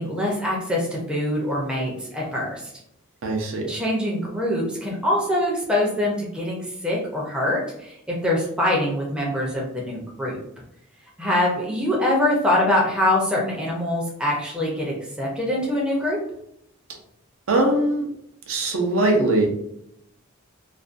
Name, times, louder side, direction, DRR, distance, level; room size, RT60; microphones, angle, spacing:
voice 1, 0.0-2.7 3.7-10.4 11.2-16.2, left 1 dB, 5° right, -4 dB, 0.4 m, -24 dB
voice 2, 3.2-3.7 17.5-18.1 18.5-19.5, right 2 dB, 65° right, 1 dB, 0.5 m, -21 dB
2.5 x 2.2 x 2.4 m, 0.77 s
head